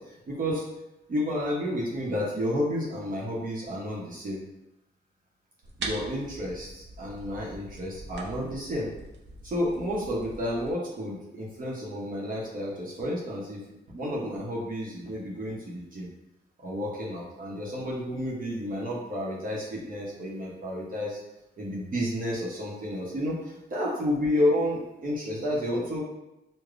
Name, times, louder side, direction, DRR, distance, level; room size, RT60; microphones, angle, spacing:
voice 1, 0.1-0.7 1.1-4.4 5.8-8.9 9.4-16.1 16.6-21.2 21.6-26.0, left 1 dB, 50° right, -4 dB, 0.8 m, -31 dB
sound 1, 5.6-10.7, right 2 dB, 80° right, 0.5 m, -42 dB
4.9 x 2.1 x 2.5 m, 0.93 s
wide cardioid pair, 130°, 18 cm